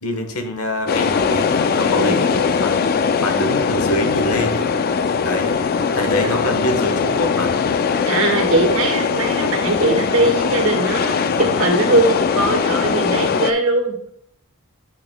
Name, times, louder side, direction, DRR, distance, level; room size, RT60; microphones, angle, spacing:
voice 1, 0.0-2.9 3.2-4.7 5.2-5.6 5.9-7.5 9.3-9.5, left 1 dB, 80° left, 5 dB, 1.1 m, -25 dB
sound 1, 0.9-13.5, left 6 dB, 45° left, 0.3 m, -20 dB
voice 2, 1.9-2.3 6.2-6.3 8.0-13.9, right 2 dB, 65° right, 2 dB, 1.5 m, -20 dB
8.7 x 6.1 x 2.2 m, 0.69 s
head